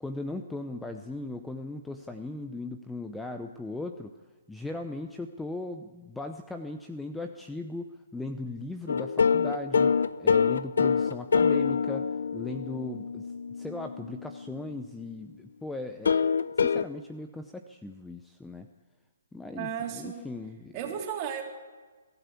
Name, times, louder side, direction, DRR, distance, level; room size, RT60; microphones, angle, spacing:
voice 1, 0.0-4.2 4.5-18.7 19.3-20.8, left 2 dB, 5° left, 6 dB, 0.7 m, -38 dB
sound 1, 8.9-14.7 16.1-16.8, left 6 dB, 75° left, 0.6 m, -26 dB
voice 2, 19.6-20.2 20.7-21.4, right 8 dB, 25° right, 0 dB, 3.9 m, -34 dB
23.0 x 13.5 x 8.3 m, 1.3 s
hypercardioid pair, 155°, 0 cm